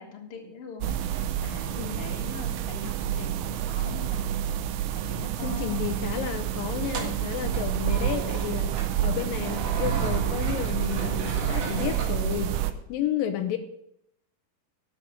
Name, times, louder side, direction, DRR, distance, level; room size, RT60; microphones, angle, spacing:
voice 1, 0.0-4.3 4.9-6.0, left 4 dB, 45° left, 2 dB, 2.5 m, -43 dB
sound 1, 0.8-12.7, right 10 dB, 75° right, 2.1 m, -29 dB
voice 2, 1.7-2.1 5.4-12.6 12.9-13.6, left 10 dB, 85° left, 7 dB, 2.6 m, -32 dB
sound 2, 6.8-12.8, right 4 dB, 55° right, 2.6 m, -38 dB
12.5 x 5.9 x 9.0 m, 0.77 s
omnidirectional pair, 3.9 m